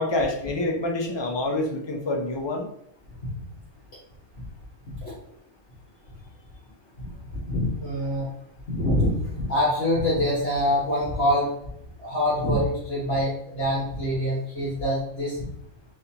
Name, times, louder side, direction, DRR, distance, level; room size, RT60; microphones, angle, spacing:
voice 1, 0.0-2.7, left 2 dB, 35° left, 2 dB, 0.5 m, -27 dB
voice 2, 7.5-8.3 8.7-11.5 12.0-15.4, left 1 dB, 60° left, -8 dB, 1.6 m, -25 dB
4.1 x 4.1 x 2.8 m, 0.74 s
omnidirectional pair, 1.2 m